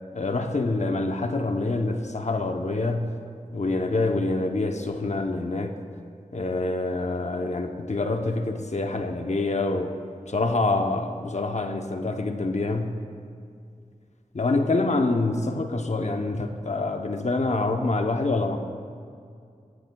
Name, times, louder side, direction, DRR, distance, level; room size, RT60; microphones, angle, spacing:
voice 1, 0.1-3.1 3.5-5.8 6.3-9.9 10.3-12.9 14.3-18.6, left 2 dB, 55° left, 5 dB, 0.8 m, -26 dB
14.5 x 14.0 x 2.3 m, 2.3 s
wide cardioid pair, 70°, 14 cm